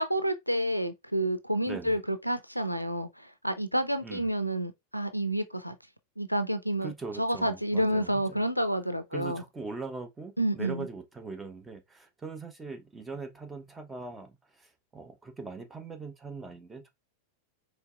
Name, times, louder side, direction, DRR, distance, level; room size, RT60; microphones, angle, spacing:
voice 1, 0.0-5.8 6.2-6.9 7.2-9.4 10.4-10.9, right 1 dB, 90° left, 0.5 m, -29 dB
voice 2, 1.7-2.0 4.0-4.3 6.8-8.4 9.1-16.9, right 4 dB, 10° right, 0.9 m, -41 dB
4.5 x 3.1 x 2.4 m
figure-of-eight pair, 90°, 0 cm